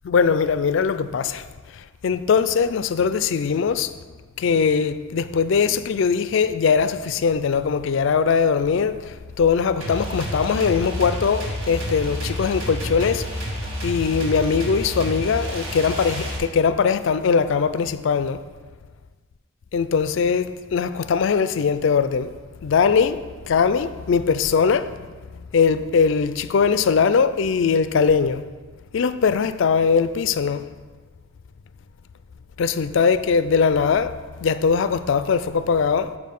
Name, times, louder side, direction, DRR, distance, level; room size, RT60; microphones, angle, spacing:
voice 1, 0.1-1.4 2.0-3.9 4.4-9.0 9.4-13.2 13.8-18.4 19.7-22.3 22.6-23.2 23.5-24.8 25.5-28.4 28.9-30.6 32.6-34.1 34.4-36.1, left 6 dB, 60° left, 0.3 m, -20 dB
sound 1, 9.8-16.4, equal, 60° right, 1.6 m, -29 dB
8.4 x 4.9 x 5.3 m
head